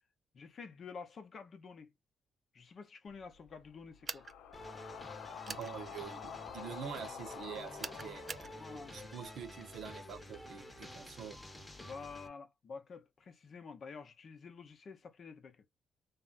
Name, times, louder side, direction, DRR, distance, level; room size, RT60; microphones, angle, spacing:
voice 1, 0.3-1.9 2.5-4.3 8.6-9.0 11.8-15.6, left 5 dB, 50° left, 0.7 m, -49 dB
sound 1, 3.1-9.2, left 8 dB, 85° left, 0.4 m, -49 dB
sound 2, 4.1-4.3 5.5-5.7 7.8-8.5, right 4 dB, 35° right, 0.4 m, -42 dB
sound 3, 4.5-12.3, left 1 dB, 10° left, 0.9 m, -50 dB
voice 2, 5.5-8.7 8.9-11.4, right 7 dB, 70° right, 0.7 m, -46 dB
3.2 x 2.1 x 2.4 m
cardioid pair, 90°, 0 cm